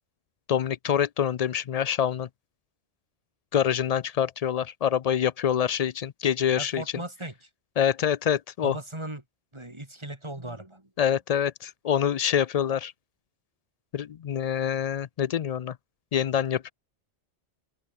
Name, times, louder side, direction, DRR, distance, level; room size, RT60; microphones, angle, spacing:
voice 1, 0.5-2.3 3.5-6.8 7.8-8.8 11.0-12.9 13.9-15.7 16.1-16.7, left 9 dB, 90° left, 0.3 m, -26 dB
voice 2, 6.6-7.5 8.6-9.2 9.5-10.9, right 1 dB, 25° right, 2.8 m, -38 dB
open air
omnidirectional pair, 1.2 m